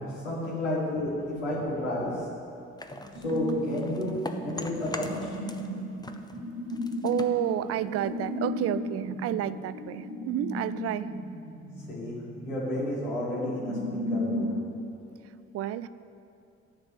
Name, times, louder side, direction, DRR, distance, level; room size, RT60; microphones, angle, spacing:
voice 1, 0.0-2.3 3.2-5.3 11.9-12.1 12.4-14.5, left 1 dB, 80° left, -6 dB, 1.8 m, -31 dB
voice 2, 1.2-2.2 3.9-4.9 7.0-11.1 15.2-15.9, right 12 dB, 45° right, 15 dB, 0.5 m, -32 dB
sound 1, 2.8-5.7 6.0-8.4, left 2 dB, 10° left, 0.8 m, -42 dB
sound 2, 3.1-14.6, left 1 dB, 65° right, 2.6 m, -35 dB
13.0 x 5.2 x 7.0 m, 2.6 s
figure-of-eight pair, 40°, 34 cm